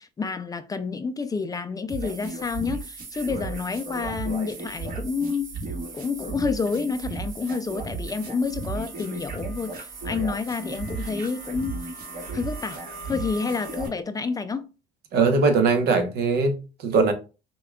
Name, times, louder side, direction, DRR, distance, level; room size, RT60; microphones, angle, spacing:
voice 1, 0.0-5.6 5.9-11.8 12.3-12.8 13.1-14.7, left 5 dB, 20° left, 0.3 m, -29 dB
sound 1, 1.9-13.9, right 3 dB, 60° right, 1.6 m, -35 dB
voice 2, 15.1-17.1, right 4 dB, 75° right, 0.8 m, -21 dB
5.3 x 2.3 x 2.2 m
cardioid pair, 110°, 17 cm